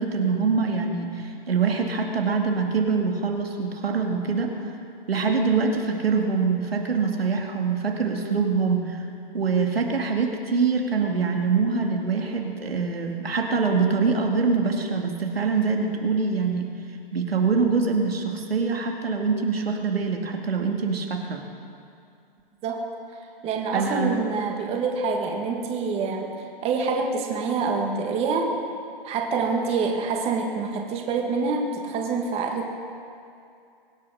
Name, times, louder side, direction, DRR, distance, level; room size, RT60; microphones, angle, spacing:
voice 1, 0.0-4.7 5.1-9.0 9.3-16.7 17.1-21.5 23.7-24.2, right 4 dB, 90° right, 2 dB, 2.4 m, -24 dB
voice 2, 23.4-28.5 29.0-32.7, right 4 dB, 20° right, 2 dB, 1.8 m, -26 dB
23.5 x 8.7 x 6.4 m, 2.5 s
hypercardioid pair, 140°, 29 cm